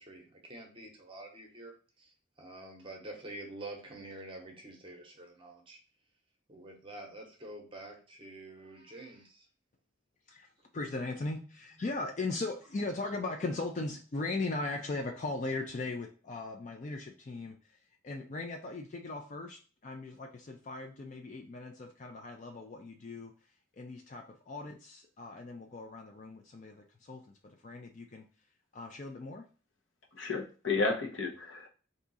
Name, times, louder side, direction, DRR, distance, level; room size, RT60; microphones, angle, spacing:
voice 1, 0.0-5.8 6.5-9.5, right 2 dB, 25° right, 2 dB, 0.8 m, -47 dB
voice 2, 10.7-17.6 18.0-23.3 23.7-28.2 28.7-29.4, left 3 dB, 40° left, 3 dB, 0.4 m, -38 dB
voice 3, 30.1-31.7, left 3 dB, 70° left, 1 dB, 1.0 m, -32 dB
3.6 x 2.7 x 4.0 m, 0.37 s
head